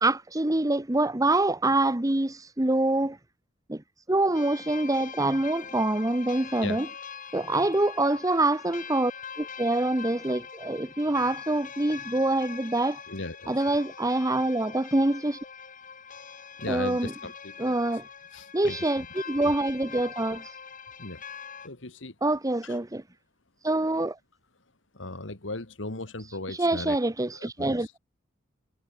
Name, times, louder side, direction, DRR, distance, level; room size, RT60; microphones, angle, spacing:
voice 1, 0.0-3.2 3.7-3.8 4.1-6.9 7.3-9.1 9.4-13.0 13.5-15.4 16.7-17.1 17.6-18.1 18.5-20.5 22.2-23.0 23.6-24.2 26.6-27.9, right 2 dB, 20° right, 1.0 m, -25 dB
sound 1, 4.3-21.7, left 7 dB, 45° left, 5.3 m, -43 dB
voice 2, 13.1-13.6 16.6-18.0 18.3-19.4 21.0-21.2 21.6-22.2 22.6-22.8 24.9-27.0 27.3-27.9, left 2 dB, 70° left, 2.4 m, -38 dB
head